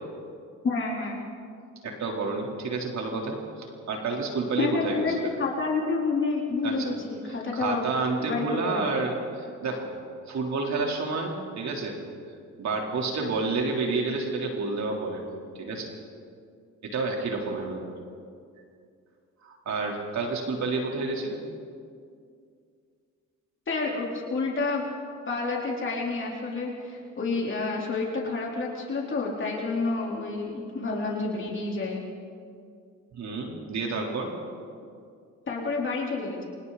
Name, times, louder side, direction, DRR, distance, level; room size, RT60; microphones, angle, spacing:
voice 1, 0.6-1.2 4.6-7.8 8.2-8.8 23.7-24.9 25.3-32.0 35.5-36.4, left 3 dB, 40° left, -3 dB, 4.1 m, -29 dB
voice 2, 1.8-5.1 6.6-6.9 7.3-9.9 10.3-12.0 12.6-15.3 15.6-15.9 16.8-17.8 19.4-21.4 33.1-34.3, right 3 dB, 65° right, 0 dB, 3.9 m, -30 dB
29.0 x 25.5 x 4.2 m, 2.3 s
cardioid pair, 90°, 30 cm